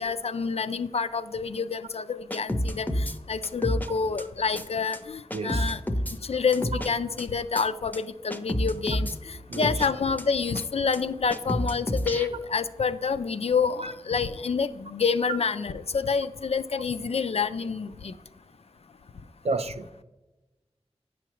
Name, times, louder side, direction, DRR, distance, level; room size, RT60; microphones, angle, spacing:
voice 1, 0.0-5.8 6.3-18.1, left 5 dB, 65° left, 12 dB, 0.4 m, -28 dB
sound 1, 2.3-3.2 3.4-3.9 4.2-4.3 4.5-4.7 4.9-5.0 5.3-6.2 6.5-6.9 7.2-7.3 7.5-7.6 7.9-8.0 8.3-9.1 9.5-9.9 10.2-10.3 10.5-10.6 10.9-11.0 11.3-12.3, equal, 15° left, 0.5 m, -29 dB
voice 2, 5.3-5.7 9.5-9.7 13.8-13.9 19.4-19.8, right 3 dB, 65° right, 9 dB, 0.5 m, -30 dB
9.2 x 5.8 x 3.0 m, 1.1 s
wide cardioid pair, 65°, 11 cm